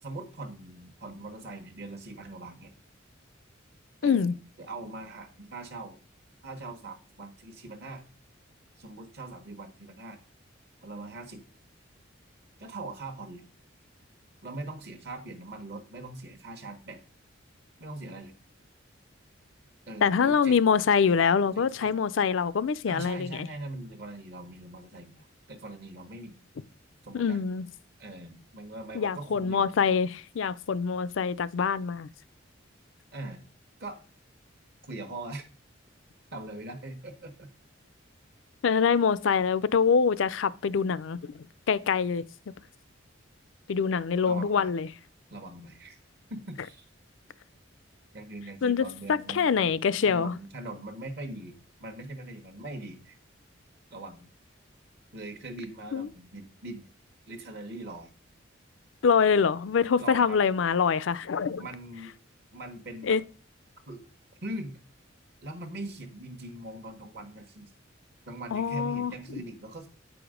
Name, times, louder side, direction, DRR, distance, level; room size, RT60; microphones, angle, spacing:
voice 1, 0.0-2.7 4.0-6.0 6.4-8.0 8.8-10.2 10.8-11.4 12.6-13.4 14.4-17.0 17.8-18.3 19.9-20.5 21.4-22.0 22.9-26.4 27.0-27.4 28.0-29.7 33.1-33.4 33.8-34.0 34.9-35.4 36.3-37.5 44.2-44.7 45.3-46.0 46.3-46.9 48.1-49.7 50.1-53.2 53.9-54.3 55.1-56.9 57.3-58.1 60.0-60.4 61.6-62.1 62.5-63.2 63.9-64.0 64.4-64.8 65.4-67.7 68.3-69.9, right 2 dB, 55° right, 1.1 m, -41 dB
voice 2, 4.0-4.3 20.0-23.5 27.1-27.7 28.9-32.1 38.6-42.2 43.7-44.9 48.6-50.4 55.9-56.1 59.0-61.7 63.1-63.2 68.5-69.4, left 6 dB, 70° left, 0.4 m, -25 dB
8.9 x 5.0 x 5.0 m
head